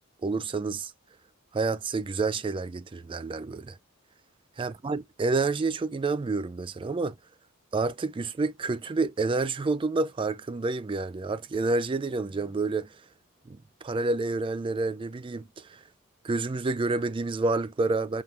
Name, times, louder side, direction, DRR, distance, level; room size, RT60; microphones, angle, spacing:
voice 1, 0.2-0.9 1.5-3.8 4.6-7.1 7.7-12.9 13.5-15.8 16.2-18.2, right 3 dB, 20° right, 0.3 m, -29 dB
5.7 x 2.1 x 3.3 m
head